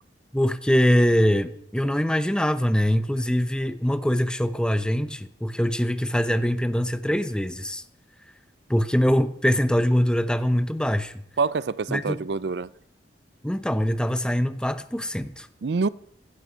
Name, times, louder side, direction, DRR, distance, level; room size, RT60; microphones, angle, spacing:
voice 1, 0.3-7.8 8.7-11.2 11.9-12.2 13.4-15.5, equal, 5° left, 0.8 m, -23 dB
voice 2, 11.4-12.7 15.6-15.9, right 4 dB, 70° right, 0.5 m, -26 dB
16.5 x 12.5 x 5.6 m
head